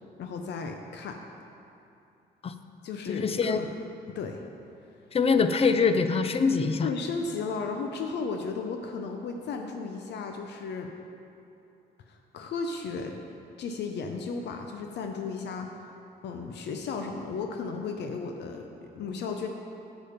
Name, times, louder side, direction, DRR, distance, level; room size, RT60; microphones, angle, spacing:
voice 1, 0.2-1.2 2.8-3.7 4.1-4.5 6.8-10.9 12.1-13.2 13.6-15.7 16.2-19.5, left 4 dB, 70° left, 4 dB, 0.7 m, -34 dB
voice 2, 3.1-3.6 5.1-6.9, left 5 dB, 35° left, 9 dB, 0.5 m, -24 dB
8.5 x 7.2 x 5.1 m, 2.7 s
cardioid pair, 110°, 18 cm